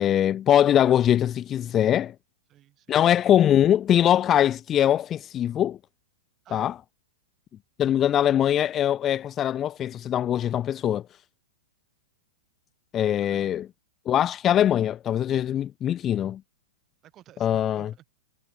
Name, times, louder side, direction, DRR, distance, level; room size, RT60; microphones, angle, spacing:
voice 1, 0.0-2.1 2.9-5.8 6.5-6.7 7.8-11.0 12.9-13.6 14.1-16.4 17.4-17.9, left 10 dB, 25° left, 0.4 m, -22 dB
voice 2, 2.5-3.4 6.4-6.7 13.2-13.5 17.0-18.1, right 13 dB, 30° right, 4.8 m, -53 dB
hypercardioid pair, 125°, 0 cm